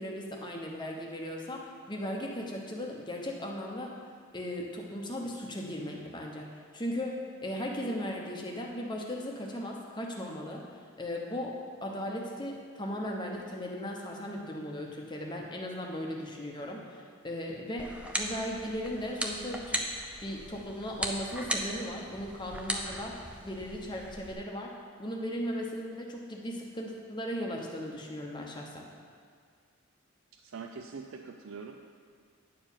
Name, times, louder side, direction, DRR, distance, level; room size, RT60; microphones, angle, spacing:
voice 1, 0.0-3.9 4.3-10.7 11.0-19.8 20.2-28.9, equal, 20° left, 0 dB, 0.8 m, -37 dB
sound 1, 17.8-24.3, right 1 dB, 5° right, 0.5 m, -37 dB
voice 2, 30.3-32.0, right 5 dB, 60° right, 4 dB, 0.4 m, -44 dB
10.0 x 4.6 x 7.1 m, 2.1 s
head